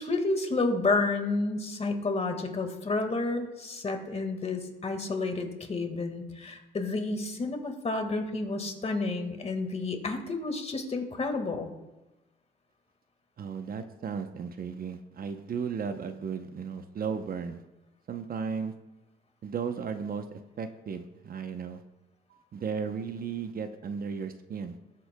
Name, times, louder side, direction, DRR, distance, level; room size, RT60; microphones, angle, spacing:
voice 1, 0.0-11.7, left 3 dB, 35° left, 5 dB, 1.7 m, -30 dB
voice 2, 13.4-17.6 18.1-18.7 19.4-20.2 20.6-21.8 22.3-24.8, right 6 dB, 50° right, 8 dB, 0.8 m, -35 dB
19.5 x 7.6 x 2.2 m, 1.0 s
cardioid pair, 90°, 20 cm